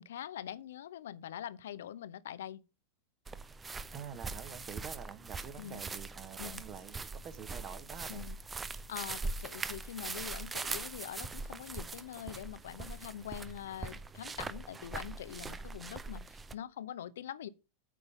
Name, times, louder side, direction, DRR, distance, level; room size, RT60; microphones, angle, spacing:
voice 1, 0.0-2.6 5.6-5.8 6.4-6.6 8.1-8.4 8.7-17.5, left 10 dB, 60° left, 0.6 m, -44 dB
sound 1, 3.3-16.5, right 3 dB, 15° right, 0.6 m, -42 dB
voice 2, 3.9-7.0 7.2-8.3, right 8 dB, 30° right, 1.1 m, -47 dB
8.4 x 5.5 x 6.6 m
figure-of-eight pair, 90°, 0 cm